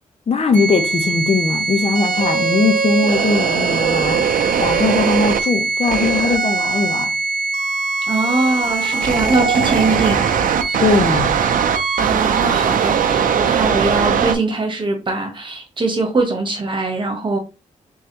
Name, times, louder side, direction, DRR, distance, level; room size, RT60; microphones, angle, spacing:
voice 1, 0.3-7.1 10.8-11.4, left 4 dB, 50° left, 0.7 m, -19 dB
sound 1, 0.5-14.4, right 6 dB, 90° right, 0.5 m, -19 dB
voice 2, 8.1-10.2 12.0-17.4, right 3 dB, 35° right, 1.3 m, -21 dB
3.6 x 3.2 x 2.9 m
wide cardioid pair, 100°, 14 cm